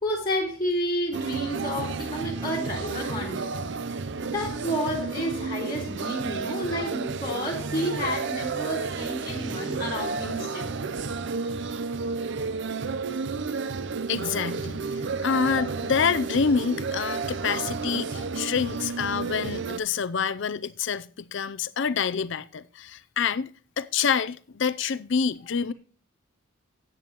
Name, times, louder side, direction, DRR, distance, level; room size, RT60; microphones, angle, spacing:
voice 1, 0.0-3.5 4.2-10.7, equal, 20° left, 2.4 m, -30 dB
sound 1, 1.1-19.8, right 4 dB, 55° right, 0.5 m, -31 dB
voice 2, 14.1-14.8 15.2-23.5 23.8-25.7, left 6 dB, 55° left, 0.5 m, -27 dB
14.0 x 9.2 x 3.0 m
head